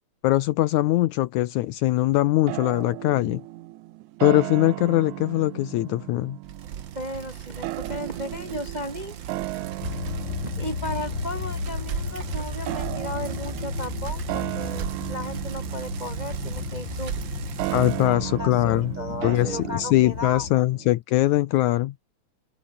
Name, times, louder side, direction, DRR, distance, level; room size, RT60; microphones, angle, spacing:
voice 1, 0.2-3.4 4.2-6.4 17.7-18.9 19.2-21.9, left 16 dB, 80° left, 2.1 m, -22 dB
sound 1, 2.5-20.9, right 18 dB, 85° right, 2.0 m, -36 dB
Bicycle, 6.4-18.1, right 9 dB, 50° right, 1.6 m, -36 dB
voice 2, 6.9-9.2 10.4-17.1 18.0-20.5, left 1 dB, 20° right, 1.3 m, -35 dB
sound 2, 9.8-20.5, left 8 dB, 45° left, 1.5 m, -35 dB
open air
omnidirectional pair, 3.5 m